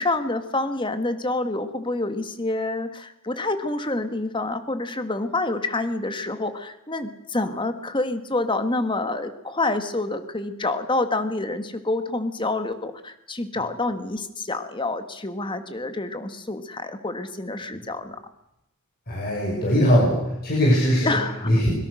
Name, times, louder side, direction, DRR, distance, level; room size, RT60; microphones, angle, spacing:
voice 1, 0.0-18.2 21.0-21.6, left 2 dB, 20° left, 8 dB, 1.8 m, -27 dB
voice 2, 19.1-21.2 21.4-21.7, equal, 45° left, -4 dB, 6.5 m, -20 dB
25.0 x 22.5 x 6.5 m, 0.87 s
head